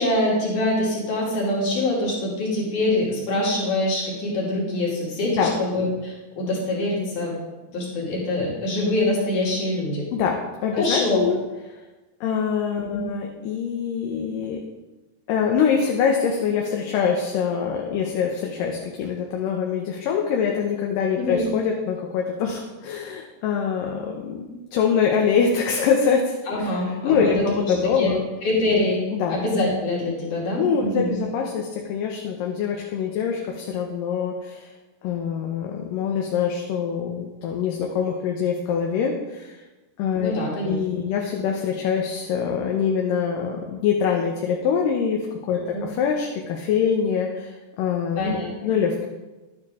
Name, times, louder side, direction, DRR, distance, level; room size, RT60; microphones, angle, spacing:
voice 1, 0.0-7.4 7.7-10.1 10.7-11.2 12.8-13.0 21.2-21.4 26.5-28.1 28.4-29.0 29.3-31.2 40.2-40.8 45.7-45.8 48.2-48.5, left 1 dB, 60° left, -4 dB, 3.9 m, -24 dB
voice 2, 10.1-11.4 11.7-11.8 12.2-14.6 15.3-26.8 27.0-28.2 29.1-29.4 30.6-34.7 35.0-39.6 40.0-40.3 40.6-45.2 45.5-48.4 48.6-49.1, left 6 dB, 75° left, 0 dB, 2.5 m, -24 dB
11.5 x 9.4 x 3.6 m, 1.1 s
omnidirectional pair, 4.0 m